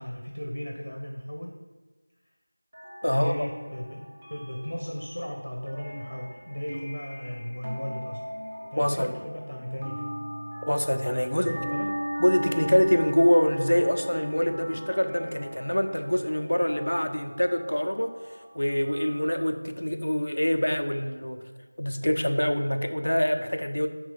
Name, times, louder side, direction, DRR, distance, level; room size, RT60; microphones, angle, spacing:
voice 1, 0.0-1.6 3.0-8.2 8.7-10.1 11.3-11.9, equal, 80° left, 1 dB, 1.1 m, -36 dB
sound 1, 2.7-19.4, equal, 15° right, 0.8 m, -39 dB
voice 2, 3.0-3.3 8.8-9.1 10.6-11.5 12.2-21.5 21.8-23.9, equal, 65° left, 6 dB, 0.7 m, -25 dB
9.8 x 3.6 x 5.2 m, 1.3 s
figure-of-eight pair, 180°, 0 cm